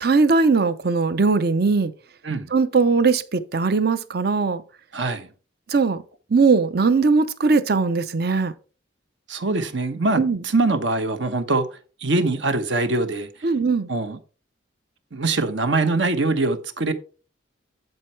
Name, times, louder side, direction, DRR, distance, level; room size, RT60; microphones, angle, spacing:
voice 1, 0.0-1.9 2.5-4.6 5.7-6.0 6.3-8.5 10.2-10.4 13.4-13.9, right 4 dB, 55° right, 0.6 m, -19 dB
voice 2, 4.9-5.3 9.3-11.7 12.0-13.3 13.9-14.2 15.1-16.9, right 2 dB, 70° right, 1.0 m, -23 dB
10.5 x 4.5 x 4.5 m
head